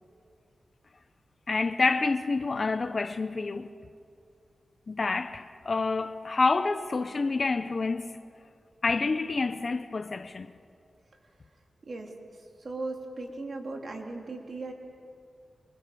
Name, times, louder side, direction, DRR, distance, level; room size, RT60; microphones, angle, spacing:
voice 1, 1.5-3.7 4.9-8.2 8.8-10.5, left 3 dB, 55° left, 1.1 m, -28 dB
voice 2, 11.8-14.7, right 2 dB, 60° right, 3.8 m, -38 dB
27.0 x 24.5 x 7.2 m
cardioid pair, 40°, 0 cm